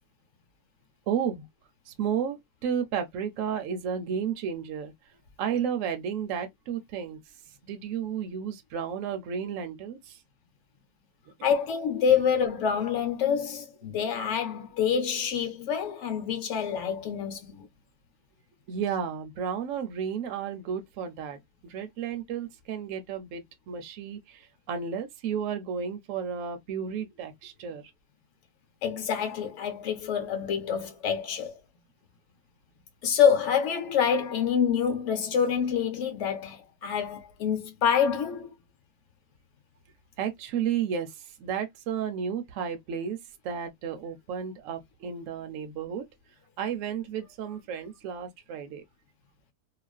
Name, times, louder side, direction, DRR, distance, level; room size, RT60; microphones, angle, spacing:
voice 1, 1.1-1.5 1.9-4.9 5.4-7.2 7.7-10.2 18.7-27.9 40.2-43.2 43.4-46.1 46.6-48.8, right 7 dB, 70° right, 0.9 m, -32 dB
voice 2, 11.4-17.7 28.8-31.6 33.0-38.5, left 7 dB, 60° left, 1.0 m, -26 dB
2.4 x 2.4 x 2.3 m
omnidirectional pair, 1.5 m